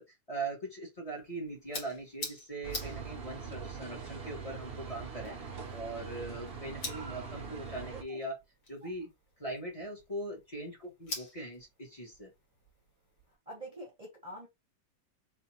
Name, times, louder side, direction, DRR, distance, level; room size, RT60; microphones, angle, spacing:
voice 1, 0.0-5.4 5.7-8.3 8.7-9.1 9.4-12.3, right 2 dB, 20° left, 1.6 m, -41 dB
sound 1, 1.1-13.4, left 2 dB, 65° left, 2.2 m, -48 dB
sound 2, 2.6-8.0, right 5 dB, 50° right, 0.7 m, -42 dB
voice 2, 13.5-14.5, right 1 dB, 25° right, 1.0 m, -46 dB
4.0 x 3.3 x 2.9 m
omnidirectional pair, 1.9 m